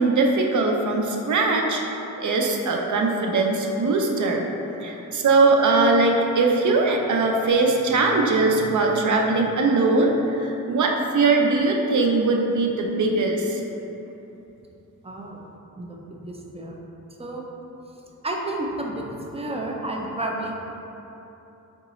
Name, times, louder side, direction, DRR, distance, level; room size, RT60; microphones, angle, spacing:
voice 1, 0.0-1.8 2.2-4.5 4.8-13.6, right 3 dB, 65° right, 1 dB, 0.6 m, -21 dB
voice 2, 15.0-15.4 15.8-16.8 17.2-17.4 18.2-20.5, right 1 dB, 20° right, -1 dB, 0.5 m, -31 dB
4.0 x 3.6 x 2.9 m, 3.0 s
cardioid pair, 70°, 32 cm